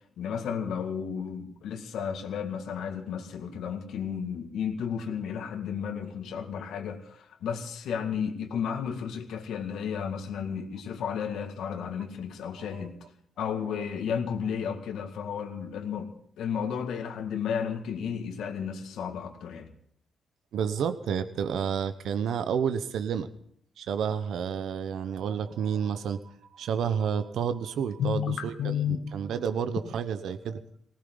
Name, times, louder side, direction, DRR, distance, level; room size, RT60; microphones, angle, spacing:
voice 1, 0.2-13.0 13.4-16.1 16.4-19.7 28.0-29.0, left 7 dB, 85° left, 5 dB, 2.1 m, -33 dB
voice 2, 12.6-12.9 13.5-13.8 16.6-16.8 20.5-23.3 23.8-30.6, right 7 dB, 80° right, 10 dB, 1.0 m, -30 dB
19.5 x 18.5 x 4.0 m, 0.64 s
cardioid pair, 135°, 0 cm